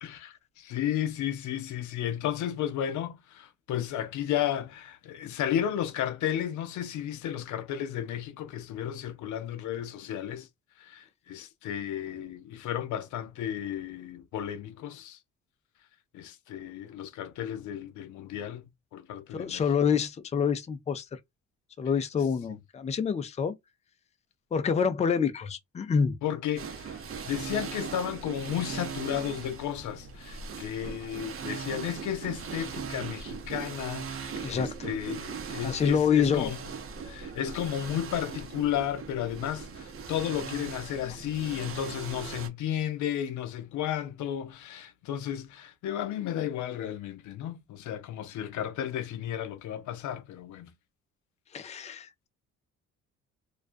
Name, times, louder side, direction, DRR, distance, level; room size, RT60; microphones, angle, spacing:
voice 1, 0.0-10.5 10.8-15.2 16.1-19.6 26.2-27.0 27.3-36.6 37.0-50.7, left 10 dB, 75° left, 0.5 m, -33 dB
voice 2, 19.3-21.2 21.8-23.5 24.5-26.2 34.4-34.9 35.6-36.5 51.5-52.3, left 6 dB, 25° left, 0.4 m, -27 dB
sound 1, 26.6-42.5, right 6 dB, 45° right, 0.7 m, -39 dB
2.3 x 2.2 x 2.4 m
cardioid pair, 90°, 30 cm